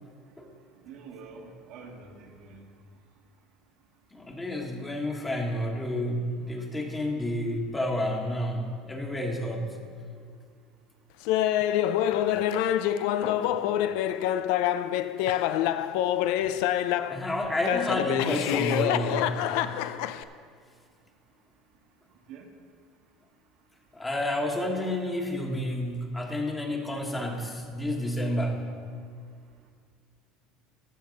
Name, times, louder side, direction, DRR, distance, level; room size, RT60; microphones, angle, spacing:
voice 1, 0.8-2.6 12.0-12.5 13.4-14.0 16.4-16.5 22.3-22.5, right 4 dB, 65° right, 1 dB, 1.5 m, -47 dB
voice 2, 4.1-9.8 17.1-19.3 23.9-28.7, left 1 dB, 15° left, 1 dB, 1.5 m, -30 dB
Laughter, 11.3-17.2 17.6-20.2, left 11 dB, 75° left, 0.4 m, -26 dB
14.5 x 6.4 x 5.3 m, 2.1 s
supercardioid pair, 105°, 0 cm